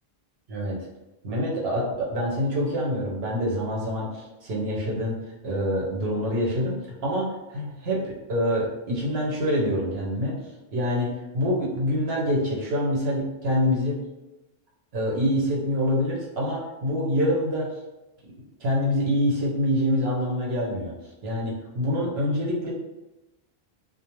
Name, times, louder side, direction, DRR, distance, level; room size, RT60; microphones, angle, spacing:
voice 1, 1.2-5.2 5.4-10.4 10.7-14.0 14.9-17.7 18.6-20.9 21.2-22.7, equal, 75° right, -4 dB, 1.0 m, -26 dB
2.5 x 2.0 x 2.9 m, 1.0 s
omnidirectional pair, 1.1 m